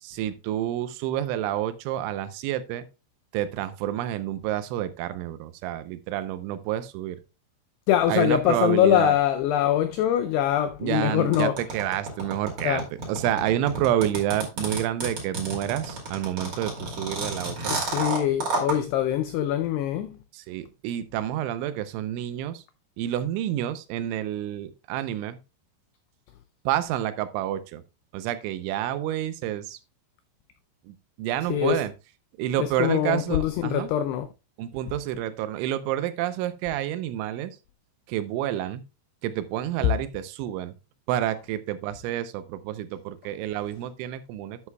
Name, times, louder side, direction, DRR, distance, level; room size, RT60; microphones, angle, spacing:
voice 1, 0.0-2.9 3.3-7.2 8.1-9.1 10.8-12.8 13.1-18.0 20.3-22.6 23.0-25.4 26.7-27.8 28.1-29.8 30.8-31.9 32.4-33.9 34.6-37.6 38.1-38.8 39.2-40.7 41.1-44.6, right 12 dB, 85° right, 3.2 m, -29 dB
voice 2, 7.9-11.5 12.6-12.8 17.7-20.2 31.5-31.8 32.6-34.3, left 11 dB, 90° left, 2.3 m, -23 dB
sound 1, 11.3-18.8, right 3 dB, 35° right, 2.4 m, -30 dB
11.0 x 7.7 x 2.3 m
omnidirectional pair, 5.4 m